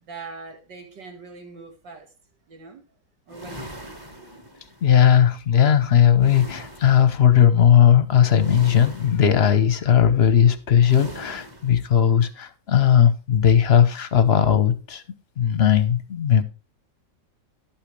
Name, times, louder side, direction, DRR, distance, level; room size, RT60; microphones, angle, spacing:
voice 1, 0.0-2.1 2.5-2.8 3.3-4.0, right 4 dB, 75° right, 3 dB, 2.7 m, -42 dB
sound 1, 3.3-4.9 6.2-7.1 8.4-9.5 10.9-11.8, equal, 15° right, 1.2 m, -40 dB
voice 2, 4.8-15.0 15.4-16.4, left 9 dB, 45° left, 11 dB, 0.9 m, -17 dB
11.5 x 8.9 x 3.3 m, 0.30 s
omnidirectional pair, 1.9 m